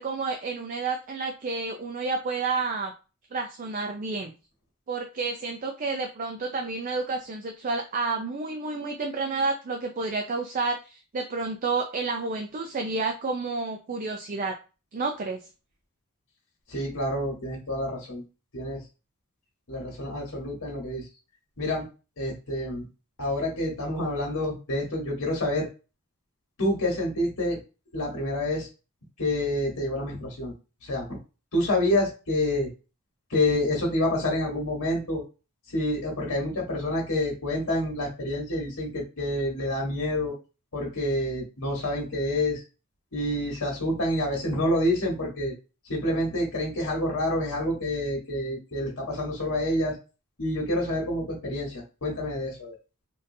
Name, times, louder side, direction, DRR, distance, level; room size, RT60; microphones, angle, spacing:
voice 1, 0.0-2.9 3.3-4.3 4.9-14.5 14.9-15.4, right 3 dB, 40° right, 3 dB, 0.4 m, -30 dB
voice 2, 16.7-18.2 18.5-18.8 19.7-21.1 21.6-21.9 22.2-22.8 23.2-25.7 26.6-27.6 27.9-28.7 29.2-30.5 30.8-31.2 31.5-32.7 33.3-35.2 35.7-40.3 40.7-42.6 43.1-45.5 45.8-50.0 50.4-52.7, left 1 dB, 70° left, -1 dB, 1.3 m, -28 dB
3.6 x 2.5 x 2.6 m, 0.32 s
head